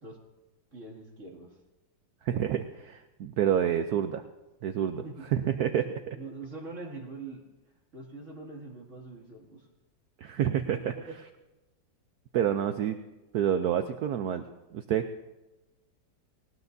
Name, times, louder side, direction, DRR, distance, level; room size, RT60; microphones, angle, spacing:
voice 1, 0.7-1.6 4.9-5.2 6.1-7.4 7.9-9.7 10.6-11.2, right 3 dB, 40° right, -1 dB, 2.7 m, -43 dB
voice 2, 2.2-4.2 4.6-5.0 5.3-6.2 10.2-10.9 12.3-13.0 13.3-14.4 14.7-15.1, right 9 dB, 70° right, 8 dB, 1.0 m, -28 dB
19.5 x 19.0 x 2.7 m, 1.1 s
omnidirectional pair, 2.0 m